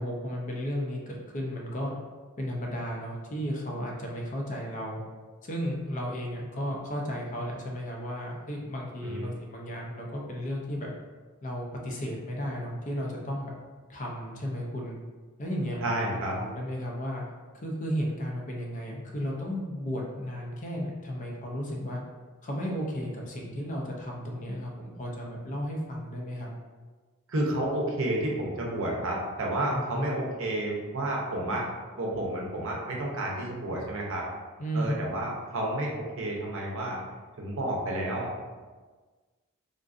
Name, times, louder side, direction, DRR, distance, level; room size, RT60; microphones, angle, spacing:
voice 1, 0.0-1.9 2.4-5.0 5.4-10.9 11.4-13.5 13.9-15.0 15.4-15.8 16.3-17.2 17.5-22.0 22.4-26.5 29.9-30.1 34.6-35.0, equal, 35° left, -1 dB, 0.5 m, -34 dB
voice 2, 9.0-9.3 15.8-16.4 27.3-31.7 32.0-34.3 34.7-37.0 37.4-38.3, right 1 dB, 60° right, -2 dB, 0.7 m, -30 dB
3.7 x 2.5 x 2.4 m, 1.4 s
head